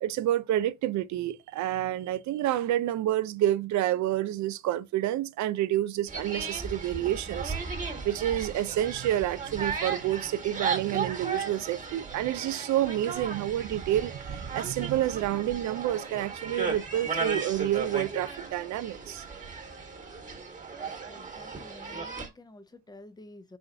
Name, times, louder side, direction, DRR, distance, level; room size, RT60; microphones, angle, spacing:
voice 1, 0.0-7.5 8.0-19.2, right 12 dB, 70° right, 0.5 m, -29 dB
sound 1, 6.1-22.3, right 5 dB, 25° right, 1.3 m, -36 dB
voice 2, 20.7-23.6, left 2 dB, 15° left, 0.6 m, -50 dB
4.3 x 2.2 x 3.8 m
cardioid pair, 90°, 30 cm